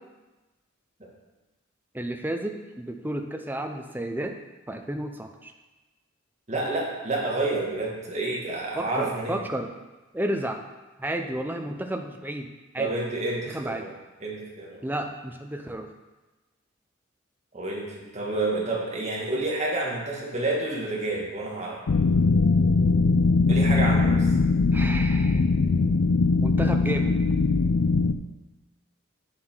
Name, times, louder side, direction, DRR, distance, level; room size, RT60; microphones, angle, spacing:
voice 1, 1.9-4.4 4.7-5.5 8.7-9.7 10.1-10.6 11.0-12.9 13.5-13.9 14.8-15.9 24.7-25.5 26.4-27.2, right 1 dB, 10° right, 5 dB, 0.6 m, -32 dB
voice 2, 6.5-9.4 12.8-13.9 14.2-14.8 17.5-21.8 23.5-24.3, right 2 dB, 35° right, -3 dB, 1.8 m, -29 dB
sound 1, 21.9-28.1, left 3 dB, 75° left, 0.4 m, -21 dB
8.5 x 7.6 x 4.4 m, 1.2 s
head